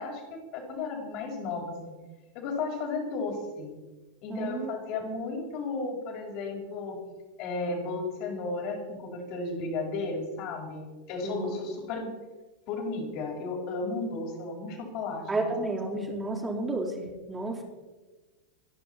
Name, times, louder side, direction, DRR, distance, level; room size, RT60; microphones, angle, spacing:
voice 1, 0.0-1.9 2.3-3.7 4.2-7.0 7.4-12.1 12.7-15.5 15.9-16.0, left 3 dB, 45° left, 0 dB, 5.8 m, -34 dB
voice 2, 4.3-4.7 11.2-11.6 15.3-16.9 17.3-17.6, right 2 dB, 15° right, -3 dB, 4.3 m, -31 dB
27.0 x 11.0 x 4.3 m, 1.2 s
figure-of-eight pair, 90°, 0 cm